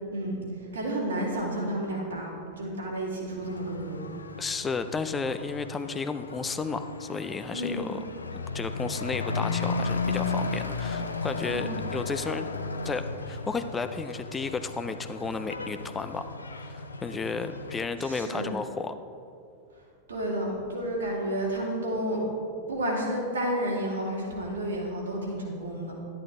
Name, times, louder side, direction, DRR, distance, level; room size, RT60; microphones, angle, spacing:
voice 1, 0.1-4.0 7.5-7.8 11.5-11.7 18.0-18.5 20.1-22.2 22.7-25.9, right 1 dB, 70° right, -3 dB, 2.7 m, -31 dB
Truck / Accelerating revving vroom, 3.4-17.9, left 4 dB, 75° left, 0.5 m, -35 dB
voice 2, 4.4-8.0 8.5-12.4 12.8-16.3 16.6-19.0, left 4 dB, 15° left, 10 dB, 0.4 m, -33 dB
11.5 x 10.5 x 3.7 m, 2.5 s
figure-of-eight pair, 90°, 0 cm